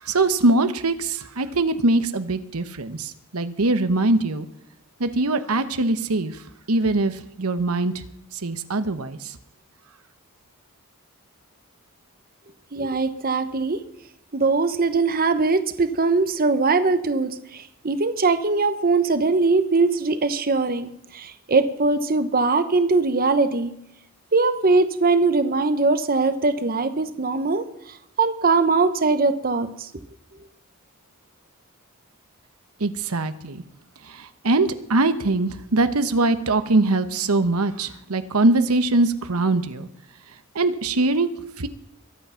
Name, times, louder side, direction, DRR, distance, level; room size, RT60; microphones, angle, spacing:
voice 1, 0.0-4.5 5.0-6.4 6.7-7.9 8.3-9.4 32.8-33.6 34.0-39.9 40.5-41.7, right 2 dB, 90° right, 11 dB, 1.1 m, -22 dB
voice 2, 12.7-13.8 14.3-17.3 17.8-23.7 24.3-27.6 28.2-29.7, right 3 dB, 40° right, 10 dB, 1.0 m, -21 dB
22.5 x 8.5 x 5.8 m, 0.78 s
head